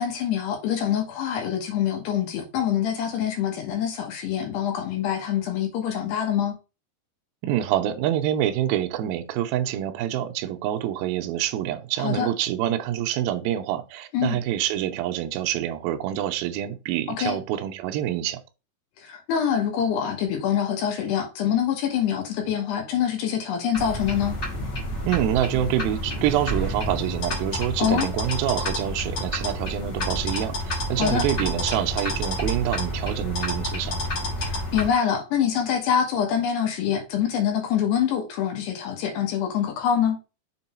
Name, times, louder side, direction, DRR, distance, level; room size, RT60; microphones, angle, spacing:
voice 1, 0.0-6.5 12.0-12.3 14.1-14.4 17.1-17.4 19.0-24.4 27.8-28.1 31.0-31.3 34.5-40.2, left 8 dB, 80° left, 3.3 m, -25 dB
voice 2, 7.4-18.4 25.1-34.0, right 12 dB, 80° right, 2.3 m, -26 dB
sound 1, 23.7-34.9, equal, 65° left, 1.1 m, -29 dB
6.9 x 3.8 x 4.3 m
omnidirectional pair, 4.9 m